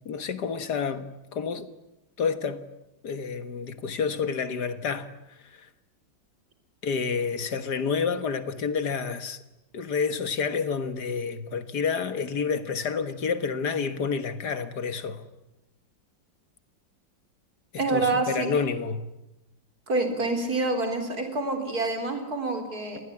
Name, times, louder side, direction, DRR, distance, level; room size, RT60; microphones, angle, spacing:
voice 1, 0.0-1.7 2.2-2.6 3.0-5.1 5.4-5.7 6.8-9.4 9.7-15.3 17.7-19.1, left 5 dB, 60° left, 1.9 m, -29 dB
voice 2, 17.8-18.5 19.9-23.0, right 3 dB, 50° right, 4.5 m, -27 dB
27.5 x 20.5 x 9.8 m
omnidirectional pair, 2.1 m